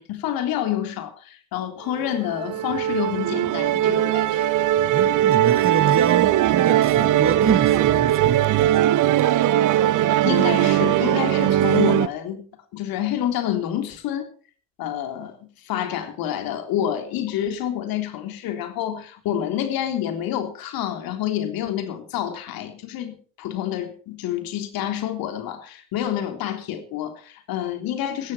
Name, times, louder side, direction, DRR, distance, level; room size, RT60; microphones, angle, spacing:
voice 1, 0.0-4.5 10.0-12.4 12.7-14.3 14.8-28.3, left 11 dB, 60° left, 3.5 m, -28 dB
Musical instrument, 2.0-12.1, right 12 dB, 50° right, 1.0 m, -19 dB
sound 1, 4.1-12.1, right 5 dB, 85° right, 7.9 m, -50 dB
voice 2, 4.9-9.3, right 7 dB, 30° right, 1.6 m, -26 dB
16.5 x 14.0 x 4.5 m
hypercardioid pair, 65°, 40 cm